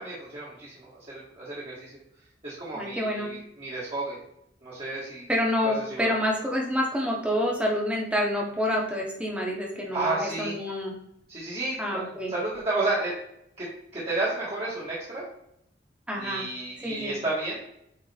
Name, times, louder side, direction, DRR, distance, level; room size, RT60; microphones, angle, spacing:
voice 1, 0.0-2.0 2.4-4.2 4.6-5.3 5.6-6.1 9.9-10.6 11.3-13.1 13.6-13.7 13.9-15.2 16.2-17.6, right 2 dB, 30° right, -8 dB, 1.9 m, -32 dB
voice 2, 2.7-3.3 5.3-10.9 11.8-12.3 16.1-16.5 16.8-17.2, equal, 5° right, -2 dB, 1.5 m, -28 dB
8.6 x 4.0 x 3.5 m, 0.76 s
head